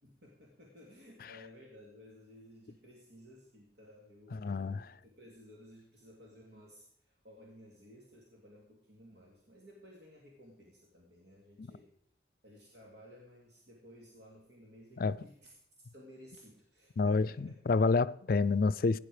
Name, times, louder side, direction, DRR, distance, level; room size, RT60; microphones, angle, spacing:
voice 1, 0.0-11.9 12.4-17.8, equal, 75° right, 2.5 m, -56 dB
voice 2, 4.3-4.8 11.6-11.7 15.0-15.2 17.0-19.0, left 4 dB, 55° left, 0.4 m, -28 dB
16.0 x 9.9 x 5.0 m
head